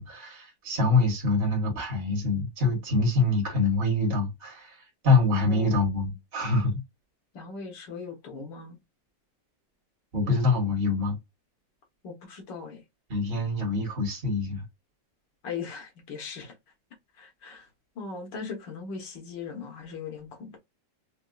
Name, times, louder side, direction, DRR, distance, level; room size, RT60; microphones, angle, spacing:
voice 1, 0.0-6.8 10.1-11.2 13.1-14.6, left 3 dB, 35° right, 1.2 m, -25 dB
voice 2, 5.5-6.2 7.3-8.8 12.0-12.8 15.4-16.5 17.2-17.7 18.0-20.6, left 5 dB, 85° left, 1.8 m, -39 dB
4.3 x 2.2 x 2.4 m
omnidirectional pair, 2.0 m